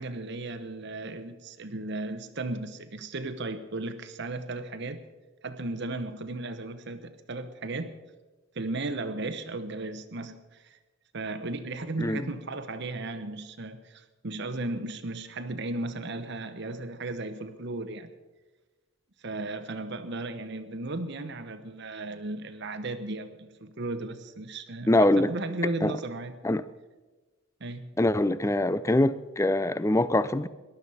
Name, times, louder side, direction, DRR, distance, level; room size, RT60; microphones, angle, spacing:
voice 1, 0.0-5.0 5.4-7.9 8.5-10.8 11.1-18.1 19.2-26.3 27.6-27.9, right 2 dB, 50° right, 9 dB, 0.9 m, -35 dB
voice 2, 24.9-25.3 25.8-26.0 26.4-26.6 28.0-30.5, left 1 dB, 15° left, 16 dB, 0.4 m, -23 dB
18.5 x 12.0 x 5.5 m, 1.2 s
head